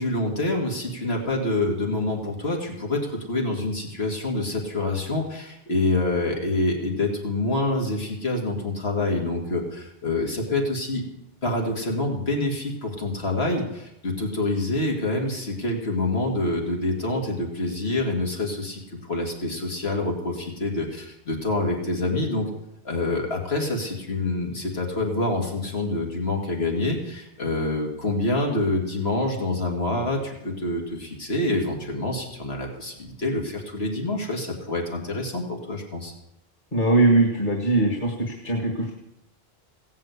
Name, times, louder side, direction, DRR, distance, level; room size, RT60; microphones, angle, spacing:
voice 1, 0.0-11.1 11.4-22.5 22.8-36.1, left 2 dB, 85° left, 1 dB, 2.6 m, -26 dB
voice 2, 36.7-38.9, right 2 dB, 55° left, 1 dB, 2.1 m, -21 dB
17.0 x 7.4 x 8.2 m, 0.84 s
omnidirectional pair, 1.0 m